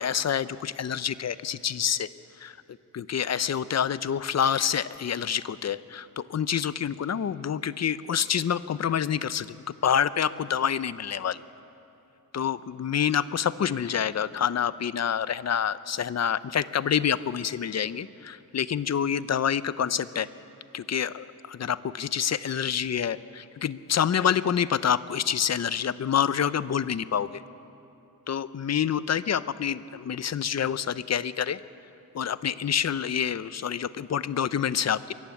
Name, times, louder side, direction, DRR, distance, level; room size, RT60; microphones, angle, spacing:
voice 1, 0.0-2.1 2.4-2.6 2.9-9.6 9.8-11.4 12.3-20.3 20.7-27.4 28.3-31.6 32.1-35.1, left 8 dB, 45° left, 16 dB, 0.5 m, -27 dB
23.0 x 14.5 x 8.5 m, 2.8 s
wide cardioid pair, 160°, 36 cm